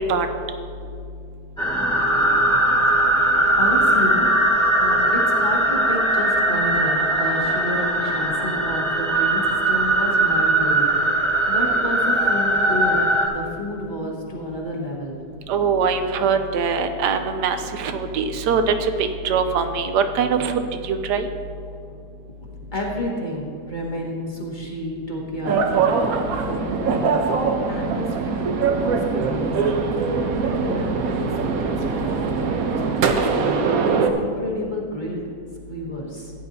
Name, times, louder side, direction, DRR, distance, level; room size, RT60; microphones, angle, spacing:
sound 1, 1.6-13.3, right 1 dB, 5° left, 1.6 m, -20 dB
voice 1, 3.6-4.3 4.8-13.0 13.3-15.2 22.5-26.0 26.5-29.8 30.4-35.2 35.7-36.3, left 1 dB, 30° left, -3 dB, 1.6 m, -30 dB
voice 2, 15.5-18.7 19.2-20.5 20.9-21.3, right 6 dB, 85° right, 7 dB, 1.3 m, -22 dB
sound 2, 25.4-34.1, right 5 dB, 65° right, 1.1 m, -22 dB
16.0 x 9.8 x 2.7 m, 2.3 s
omnidirectional pair, 1.8 m